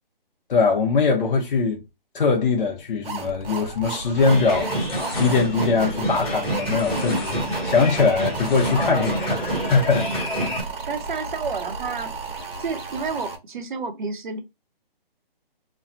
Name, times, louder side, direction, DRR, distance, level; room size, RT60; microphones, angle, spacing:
voice 1, 0.5-1.8 2.1-10.3, left 4 dB, 60° left, 0.8 m, -22 dB
sound 1, 3.0-13.4, right 4 dB, 70° right, 1.2 m, -34 dB
sound 2, 4.0-4.3 4.6-6.4 6.7-7.4 7.7-9.1 9.4-9.5, left 4 dB, 25° left, 0.5 m, -35 dB
sound 3, 4.1-10.6, right 1 dB, 5° left, 1.0 m, -27 dB
voice 2, 10.1-10.4 10.9-12.1 12.6-14.4, right 4 dB, 55° right, 0.8 m, -30 dB
3.1 x 2.1 x 2.6 m
hypercardioid pair, 165°, 29 cm